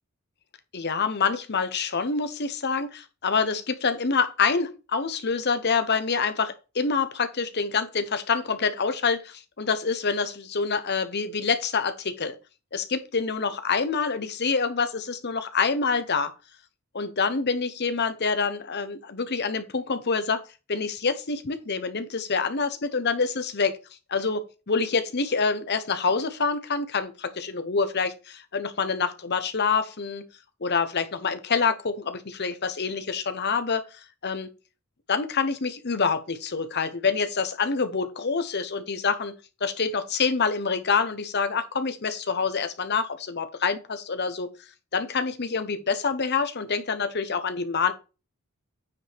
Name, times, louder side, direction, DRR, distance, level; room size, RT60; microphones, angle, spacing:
voice 1, 0.7-12.3 12.7-16.3 16.9-20.4 20.7-23.8 24.1-30.2 30.6-34.5 35.1-39.3 39.6-44.5 44.9-47.9, left 5 dB, 50° left, 0.9 m, -26 dB
9.3 x 5.4 x 3.5 m
head